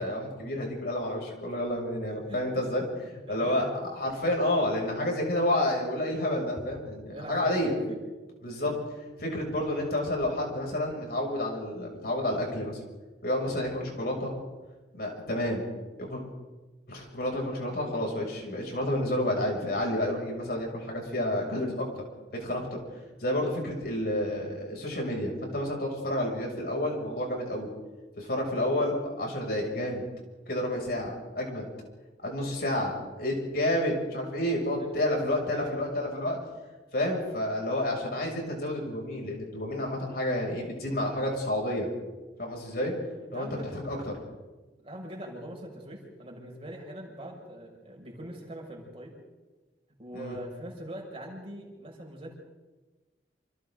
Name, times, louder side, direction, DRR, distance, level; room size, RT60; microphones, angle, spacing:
voice 1, 0.0-2.8 3.1-3.7 3.9-7.7 8.4-8.7 9.0-12.8 13.2-14.3 14.9-15.6 16.0-16.2 16.9-21.9 22.3-22.6 23.2-27.7 28.2-30.0 30.5-31.6 32.2-32.9 33.2-36.4 36.9-41.9 42.4-42.9 43.3-43.5 43.8-44.0 50.1-50.4, left 1 dB, 60° left, 0 dB, 7.0 m, -30 dB
voice 2, 3.3-3.7 7.1-8.0 8.5-8.7 35.1-35.9 43.3-43.7 44.8-49.1 50.0-52.3, right 1 dB, 35° right, -1 dB, 6.2 m, -42 dB
28.5 x 28.0 x 4.0 m, 1.2 s
head